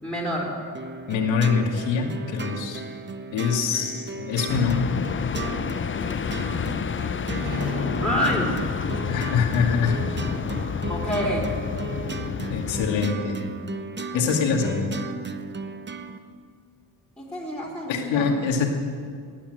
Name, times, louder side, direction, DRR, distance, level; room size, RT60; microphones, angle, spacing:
voice 1, 0.0-0.6 8.0-8.7 10.9-11.6 17.2-18.3, equal, ahead, -3 dB, 4.1 m, -27 dB
sound 1, 0.7-16.2, right 4 dB, 25° right, 0.9 m, -36 dB
voice 2, 1.1-2.8 3.3-4.8 9.1-10.0 12.5-13.4 14.1-14.9 17.9-18.7, left 5 dB, 90° left, 2 dB, 2.3 m, -24 dB
sound 2, 4.5-13.1, left 7 dB, 30° left, 0.5 m, -29 dB
sound 3, 7.4-12.7, right 2 dB, 60° right, 2.9 m, -39 dB
18.5 x 8.8 x 7.9 m, 2.2 s
cardioid pair, 90°, 44 cm